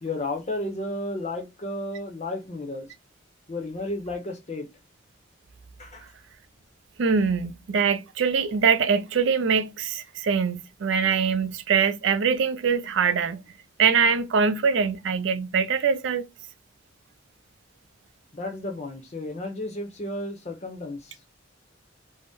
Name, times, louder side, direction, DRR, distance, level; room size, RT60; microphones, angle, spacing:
voice 1, 0.0-2.9 3.5-4.7 5.8-6.1 18.3-21.1, left 2 dB, 35° left, 0.7 m, -33 dB
voice 2, 7.0-13.4 13.8-16.3, right 6 dB, 75° right, 0.4 m, -23 dB
2.6 x 2.0 x 3.4 m
head